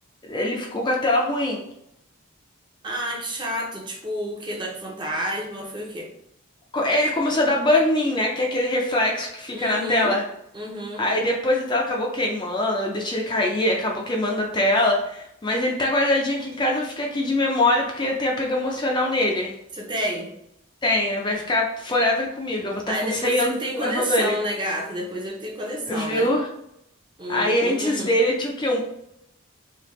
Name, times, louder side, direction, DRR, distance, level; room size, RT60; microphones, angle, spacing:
voice 1, 0.3-1.6 6.7-10.2 11.0-19.5 20.8-24.4 25.9-26.5 27.3-28.8, left 1 dB, 20° left, -1 dB, 0.4 m, -23 dB
voice 2, 2.8-6.1 9.5-10.2 10.5-11.1 19.7-20.3 22.9-26.3 27.2-28.1, equal, 20° right, -1 dB, 0.6 m, -30 dB
3.4 x 2.7 x 3.0 m, 0.77 s
head